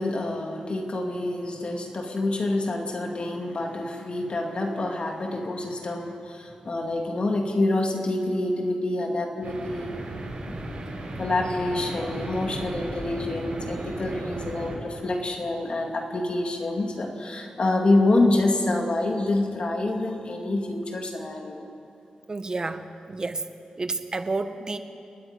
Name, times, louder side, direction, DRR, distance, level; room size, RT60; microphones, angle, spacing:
voice 1, 0.0-10.0 10.5-21.7, left 2 dB, 45° left, 2 dB, 2.3 m, -27 dB
sound 1, 9.4-14.8, right 2 dB, 75° right, 6.4 m, -35 dB
voice 2, 22.3-23.4 23.8-24.8, right 3 dB, 30° right, 9 dB, 1.1 m, -30 dB
29.0 x 9.8 x 9.7 m, 2.6 s
wide cardioid pair, 125°, 2 cm